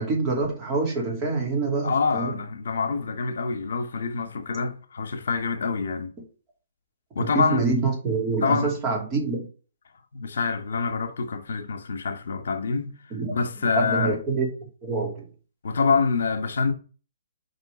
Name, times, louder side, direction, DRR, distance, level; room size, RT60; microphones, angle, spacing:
voice 1, 0.0-2.4 4.6-4.7 7.2-9.5 13.1-13.4 13.6-15.2, right 3 dB, 25° right, 2.5 m, -26 dB
voice 2, 1.8-6.1 7.1-7.6 8.4-8.8 10.1-12.9 13.3-14.2 15.6-16.7, left 5 dB, 75° left, 1.2 m, -26 dB
5.6 x 3.8 x 6.0 m
hypercardioid pair, 150°, 0 cm